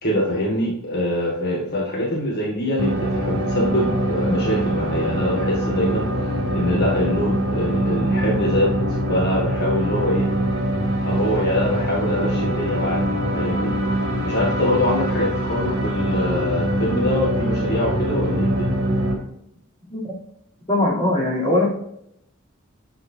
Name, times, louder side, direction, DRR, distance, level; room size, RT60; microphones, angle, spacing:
voice 1, 0.0-6.1 6.5-8.7 9.1-10.2 11.0-13.0 13.3-13.7 14.2-18.7, left 1 dB, 50° left, -3 dB, 1.8 m, -24 dB
sound 1, 2.8-19.1, right 1 dB, 55° right, 2.9 m, -23 dB
voice 2, 20.7-21.7, left 1 dB, 25° left, -5 dB, 3.4 m, -20 dB
10.5 x 7.1 x 2.8 m, 0.75 s
head